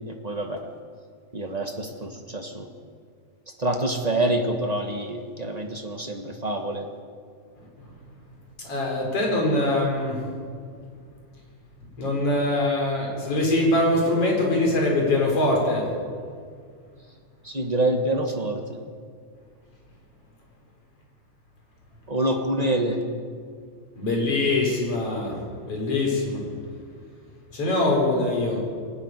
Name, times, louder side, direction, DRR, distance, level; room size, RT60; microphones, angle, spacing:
voice 1, 0.0-0.6 1.3-2.7 3.6-6.9 17.4-18.6 22.1-23.0, right 1 dB, 30° right, 3 dB, 0.7 m, -26 dB
voice 2, 8.6-10.2 12.0-15.8 24.0-25.4 25.6-26.4 27.5-28.6, left 2 dB, 50° left, -1 dB, 5.5 m, -23 dB
21.5 x 13.0 x 9.8 m, 2.1 s
omnidirectional pair, 3.4 m